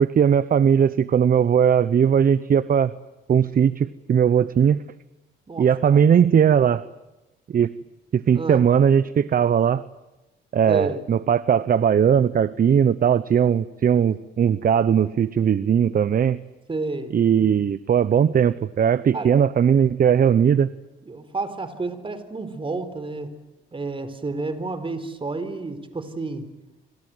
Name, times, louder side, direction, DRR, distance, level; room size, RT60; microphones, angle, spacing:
voice 1, 0.0-2.9 3.3-4.8 5.6-6.8 7.5-7.7 8.1-9.8 10.5-16.4 17.1-20.7, right 8 dB, 45° right, 15 dB, 0.9 m, -19 dB
voice 2, 5.5-6.0 8.3-8.6 10.7-11.0 16.7-17.1 19.1-19.3 21.0-23.3 23.7-26.5, right 3 dB, 25° right, 11 dB, 4.2 m, -30 dB
27.0 x 26.5 x 8.0 m, 1.0 s
cardioid pair, 90°, 20 cm